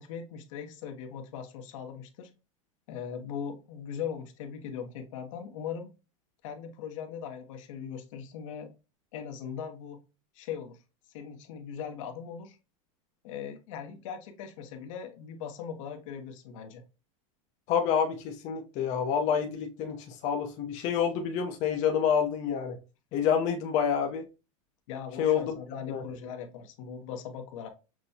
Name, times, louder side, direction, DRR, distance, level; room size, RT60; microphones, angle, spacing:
voice 1, 0.0-2.3 2.9-5.9 6.4-8.7 9.1-10.0 10.3-10.8 11.1-12.6 13.2-16.8 24.9-27.7, left 7 dB, 70° left, 5 dB, 1.0 m, -39 dB
voice 2, 17.7-22.8 23.1-24.2 25.2-25.6 25.9-26.0, left 7 dB, 45° left, 3 dB, 0.7 m, -28 dB
6.1 x 2.2 x 2.7 m, 0.29 s
supercardioid pair, 130°, 17 cm